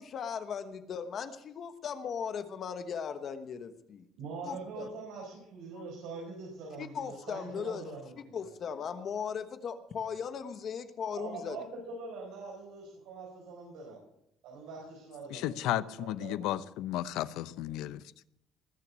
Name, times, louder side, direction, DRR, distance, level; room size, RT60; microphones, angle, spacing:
voice 1, 0.0-4.1 4.4-4.9 5.8-5.9 6.8-7.8 8.3-11.6, left 7 dB, 40° left, 1.2 m, -38 dB
voice 2, 4.2-8.1 8.4-8.5 11.2-14.0 14.4-16.6, right 4 dB, 90° right, 4.8 m, -44 dB
voice 3, 15.3-18.1, left 13 dB, 85° left, 0.7 m, -34 dB
20.0 x 6.9 x 8.3 m
cardioid pair, 165°, 0 cm